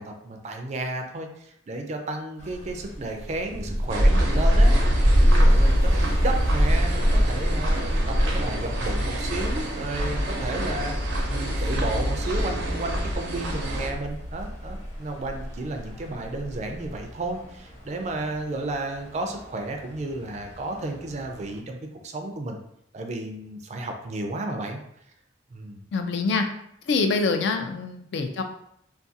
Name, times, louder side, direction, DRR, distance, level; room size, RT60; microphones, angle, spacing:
voice 1, 0.0-4.7 5.2-22.6 22.9-24.8 25.5-25.8, right 2 dB, 40° right, 4 dB, 0.3 m, -33 dB
sound 1, 2.4-21.6, equal, 40° left, 1.0 m, -31 dB
sound 2, 3.9-13.9, equal, 85° right, 0.5 m, -23 dB
voice 2, 25.9-26.4 26.9-28.4, left 4 dB, 65° left, 5 dB, 0.3 m, -25 dB
2.4 x 2.2 x 2.6 m, 0.74 s
head